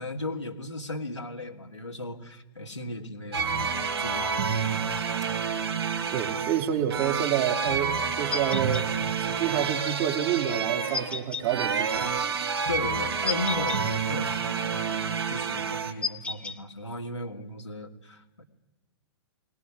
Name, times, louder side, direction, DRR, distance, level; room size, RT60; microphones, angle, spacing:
voice 1, 0.0-4.9 12.7-18.4, left 2 dB, 85° left, 1 dB, 2.3 m, -36 dB
sound 1, 3.3-15.9, right 6 dB, 65° right, 3.1 m, -29 dB
voice 2, 6.1-8.9 9.2-12.1, right 10 dB, 40° right, 3 dB, 2.7 m, -28 dB
sound 2, 8.3-8.9 10.9-11.5 13.3-13.8 16.0-16.6, left 5 dB, 5° left, 0.8 m, -32 dB
23.0 x 19.0 x 9.8 m, 1.1 s
figure-of-eight pair, 110°, 15 cm